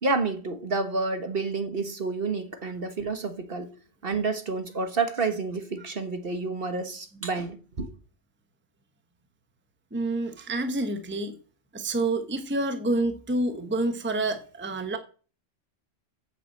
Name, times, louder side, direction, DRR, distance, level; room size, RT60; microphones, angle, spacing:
voice 1, 0.0-3.7 4.0-7.9, right 3 dB, 45° right, 1.4 m, -29 dB
voice 2, 9.9-11.4 11.7-15.0, right 2 dB, 10° right, 1.0 m, -28 dB
8.2 x 7.4 x 7.7 m
omnidirectional pair, 1.3 m